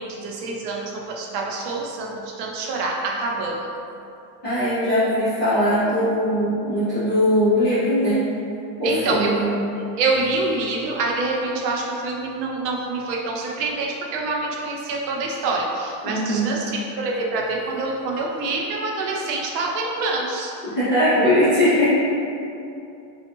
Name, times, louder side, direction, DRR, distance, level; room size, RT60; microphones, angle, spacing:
voice 1, 0.0-3.7 8.8-9.4 10.0-20.5, right 3 dB, 80° right, -2 dB, 0.8 m, -26 dB
voice 2, 4.4-8.3 8.8-9.5 16.0-16.5 20.6-21.9, equal, 20° left, -17 dB, 1.2 m, -20 dB
4.2 x 2.4 x 2.9 m, 2.7 s
cardioid pair, 180°, 48 cm